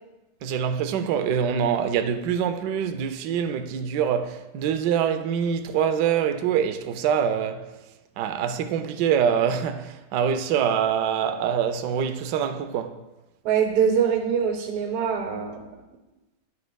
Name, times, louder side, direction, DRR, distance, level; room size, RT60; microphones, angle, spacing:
voice 1, 0.4-7.7 8.2-13.0, right 8 dB, 70° right, 1.0 m, -25 dB
voice 2, 13.5-15.7, right 7 dB, 90° right, 1.9 m, -23 dB
10.5 x 9.6 x 2.3 m
omnidirectional pair, 2.4 m